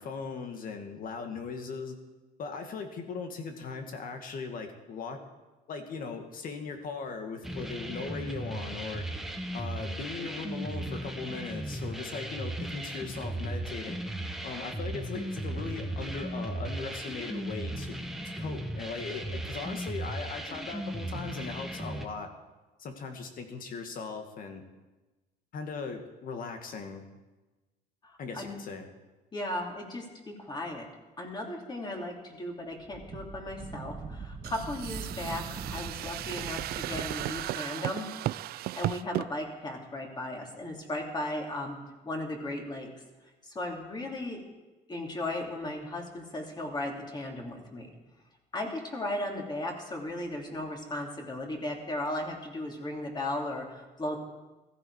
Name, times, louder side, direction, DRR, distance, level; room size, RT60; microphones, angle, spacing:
voice 1, 0.0-2.0 2.4-5.2 5.7-9.1 9.5-14.0 14.4-18.0 18.2-22.3 22.8-24.6 25.5-27.0 28.2-28.9, left 4 dB, 55° left, 5 dB, 2.2 m, -39 dB
sound 1, 7.4-22.1, right 1 dB, ahead, 1.3 m, -36 dB
voice 2, 28.0-28.6 29.3-30.9 31.2-38.1 38.5-41.8 42.0-42.9 43.4-44.4 44.9-47.9 48.5-54.2, left 1 dB, 25° left, 0 dB, 3.1 m, -36 dB
Wind, 32.7-37.5, right 4 dB, 30° right, 1.8 m, -42 dB
sound 2, 34.4-39.3, right 15 dB, 65° right, 0.4 m, -35 dB
15.0 x 15.0 x 4.9 m, 1.1 s
cardioid pair, 110°, 17 cm